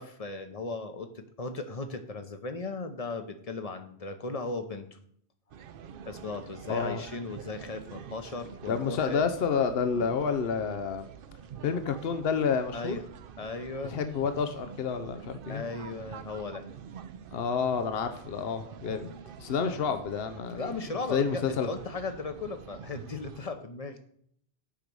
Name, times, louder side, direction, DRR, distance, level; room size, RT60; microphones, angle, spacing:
voice 1, 0.0-5.0 6.1-9.2 12.7-13.0 13.4-13.9 15.5-16.6 19.6-19.8 20.5-24.0, left 3 dB, 35° left, 8 dB, 1.0 m, -37 dB
sound 1, 5.5-23.4, right 8 dB, 60° right, 0.7 m, -47 dB
voice 2, 6.7-7.0 8.7-11.1 11.6-13.0 13.9-15.6 17.3-19.1 19.4-20.7 21.1-21.7, left 6 dB, 65° left, 9 dB, 1.0 m, -29 dB
8.6 x 5.3 x 6.2 m, 0.65 s
omnidirectional pair, 1.1 m